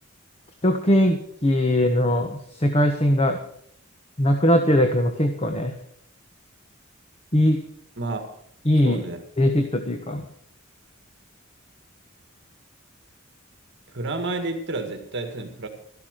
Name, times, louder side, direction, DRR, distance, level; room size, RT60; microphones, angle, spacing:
voice 1, 0.6-3.4 4.2-5.7 7.3-7.6 8.7-9.0 9.4-10.2, left 1 dB, 30° left, 6 dB, 1.2 m, -20 dB
voice 2, 8.0-8.3 8.8-9.2 13.9-15.7, right 2 dB, 60° right, 6 dB, 1.9 m, -30 dB
13.5 x 12.0 x 6.5 m, 0.66 s
head